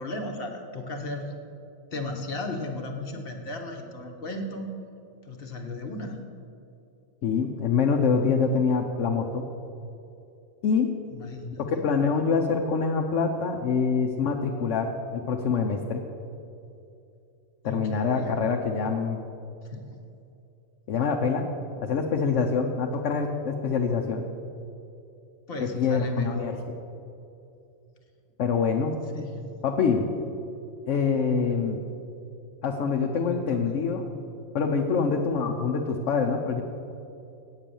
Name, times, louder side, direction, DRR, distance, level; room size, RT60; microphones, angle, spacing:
voice 1, 0.0-1.3 1.9-4.7 5.3-6.2 11.1-11.8 17.6-18.3 19.7-19.8 25.5-26.5 29.1-29.4 33.3-33.9, left 2 dB, 50° left, 3 dB, 1.2 m, -35 dB
voice 2, 7.2-9.5 10.6-10.9 11.7-16.0 17.6-19.2 20.9-21.5 21.8-24.2 25.6-26.6 28.4-28.9 29.6-30.1 30.9-31.8 32.6-34.1 34.5-36.6, left 5 dB, 75° left, 1 dB, 1.0 m, -25 dB
8.7 x 7.5 x 6.9 m, 2.6 s
omnidirectional pair, 1.3 m